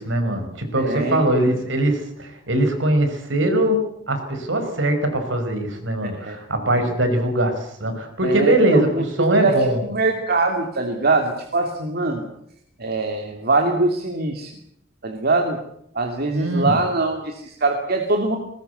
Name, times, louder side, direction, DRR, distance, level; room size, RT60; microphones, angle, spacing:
voice 1, 0.0-9.8 16.3-16.7, right 1 dB, 70° right, 7 dB, 5.3 m, -21 dB
voice 2, 0.8-1.5 6.0-6.4 6.7-6.9 8.2-8.9 9.2-12.3 12.8-14.5 15.0-15.6 15.9-18.4, right 3 dB, 55° right, 3 dB, 2.7 m, -23 dB
21.0 x 20.0 x 8.2 m, 0.72 s
head